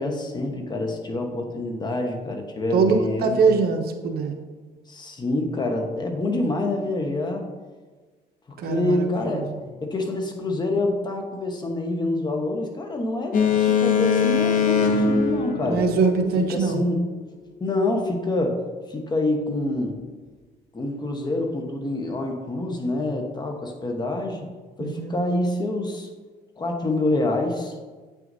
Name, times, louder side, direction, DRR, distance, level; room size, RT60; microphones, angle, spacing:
voice 1, 0.0-3.4 4.9-7.5 8.6-15.8 16.4-17.0 17.6-18.6 18.9-20.0 20.7-24.4 24.8-26.1 26.6-27.7, left 2 dB, 25° left, 3 dB, 1.1 m, -26 dB
voice 2, 2.7-4.4 8.6-9.6 15.7-16.8 24.8-25.1, right 4 dB, 65° right, 5 dB, 0.8 m, -23 dB
Boat Water vehicle, 13.3-16.5, left 6 dB, 50° left, 0.9 m, -22 dB
8.5 x 6.1 x 2.7 m, 1.3 s
cardioid pair, 110°, 17 cm